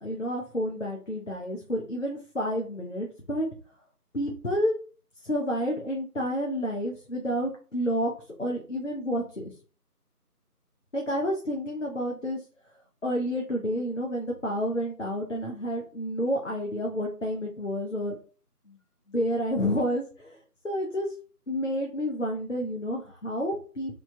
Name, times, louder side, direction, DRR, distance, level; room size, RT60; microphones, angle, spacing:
voice 1, 0.0-3.5 4.1-4.7 5.2-8.1 8.4-9.5 10.9-12.4 13.0-18.2 18.7-18.8 19.1-20.4 20.6-21.1 21.5-23.9, equal, 50° left, 0 dB, 0.6 m, -30 dB
3.0 x 2.2 x 2.6 m, 0.39 s
figure-of-eight pair, 170°, 47 cm